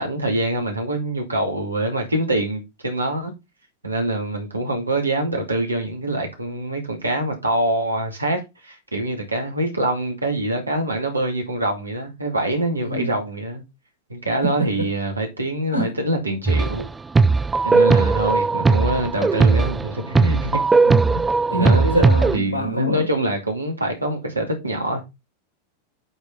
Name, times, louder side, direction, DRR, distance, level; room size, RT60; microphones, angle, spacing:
voice 1, 0.0-3.3 3.8-13.6 14.1-16.9 17.6-20.6 21.1-21.2 21.5-22.0 22.3-25.0, right 1 dB, 80° right, 2.3 m, -25 dB
voice 2, 14.4-14.9 15.7-15.9 17.7-17.8 20.8-21.2 21.5-23.1, equal, 75° left, 3.1 m, -25 dB
sound 1, 16.5-16.9 17.1-22.4, right 4 dB, 10° right, 0.3 m, -17 dB
8.8 x 4.5 x 3.9 m
figure-of-eight pair, 90°, 0 cm